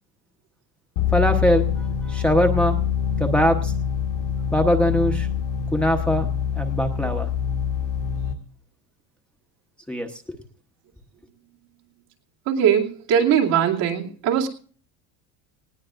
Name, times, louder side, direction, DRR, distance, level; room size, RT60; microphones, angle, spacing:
sound 1, 1.0-8.3, left 8 dB, 60° left, 1.5 m, -25 dB
voice 1, 1.1-1.7 2.1-2.8 3.2-3.7 4.5-5.3 5.7-6.3 6.6-7.3 9.9-10.4, equal, 5° left, 3 dB, 0.9 m, -21 dB
voice 2, 12.5-14.5, right 8 dB, 65° right, -2 dB, 2.7 m, -20 dB
19.0 x 17.5 x 2.5 m, 0.44 s
supercardioid pair, 130°, 45 cm